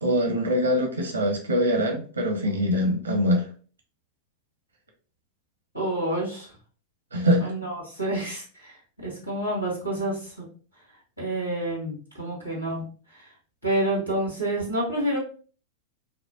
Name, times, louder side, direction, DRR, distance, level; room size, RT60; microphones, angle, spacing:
voice 1, 0.0-3.4 7.1-7.5, equal, 80° right, 3 dB, 0.8 m, -23 dB
voice 2, 5.7-6.5 7.4-8.8 9.0-10.5 11.2-12.8 13.1-13.3 13.6-15.2, right 1 dB, 85° left, -5 dB, 1.8 m, -28 dB
5.5 x 2.1 x 2.4 m, 0.39 s
figure-of-eight pair, 90°, 0 cm